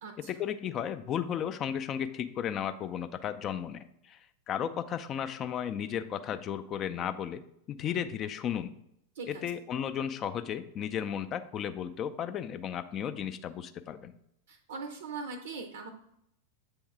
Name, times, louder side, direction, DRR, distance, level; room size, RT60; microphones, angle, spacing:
voice 1, 0.2-4.2 4.5-7.4 7.7-8.7 9.3-14.1, left 9 dB, 30° left, 11 dB, 0.4 m, -34 dB
voice 2, 14.5-15.9, right 4 dB, 60° right, 6 dB, 0.6 m, -40 dB
7.8 x 3.5 x 4.7 m, 0.76 s
figure-of-eight pair, 90°, 0 cm